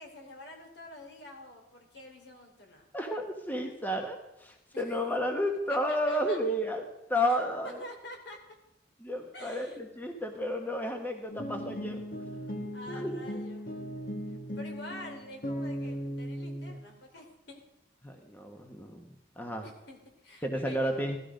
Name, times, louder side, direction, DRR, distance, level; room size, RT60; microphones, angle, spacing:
voice 1, 0.0-2.9 4.7-5.1 5.7-6.4 7.3-7.4 7.8-8.4 9.3-9.8 12.7-13.7 14.3-17.6 19.6-21.0, left 1 dB, 65° left, 3 dB, 3.1 m, -47 dB
voice 2, 2.9-6.8 7.1-7.8 9.0-12.0 12.9-13.1 18.0-19.0 19.4-19.7 20.4-21.2, equal, 10° left, 3 dB, 1.3 m, -32 dB
sound 1, 11.3-16.8, equal, 50° left, 1.6 m, -37 dB
17.0 x 13.0 x 5.1 m, 0.91 s
head